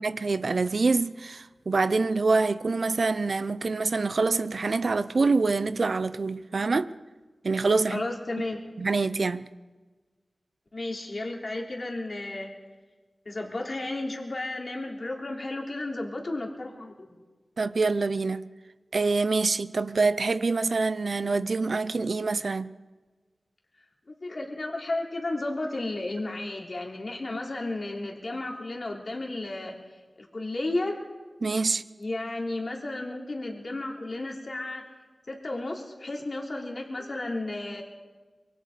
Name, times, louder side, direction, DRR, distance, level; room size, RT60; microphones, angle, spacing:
voice 1, 0.0-6.9 7.4-8.0 8.8-9.4 17.6-18.5 18.9-22.7 31.4-31.8, right 3 dB, 70° right, 0.7 m, -25 dB
voice 2, 7.9-8.6 10.7-12.5 13.3-17.2 24.1-31.0 32.0-34.9 35.3-37.8, left 2 dB, 55° left, 3.5 m, -33 dB
26.0 x 23.0 x 5.1 m
wide cardioid pair, 60°, 0 cm